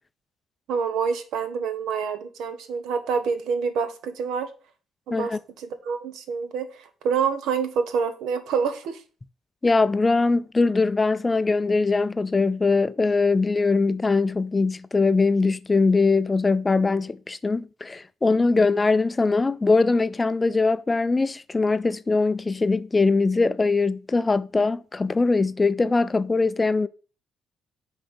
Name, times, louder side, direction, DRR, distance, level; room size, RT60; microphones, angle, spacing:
voice 1, 0.7-4.5 5.1-5.3 5.6-9.0, right 6 dB, 85° right, 0.9 m, -27 dB
voice 2, 9.6-26.9, left 3 dB, 25° left, 0.4 m, -22 dB
5.7 x 4.0 x 5.4 m
cardioid pair, 90°, 0 cm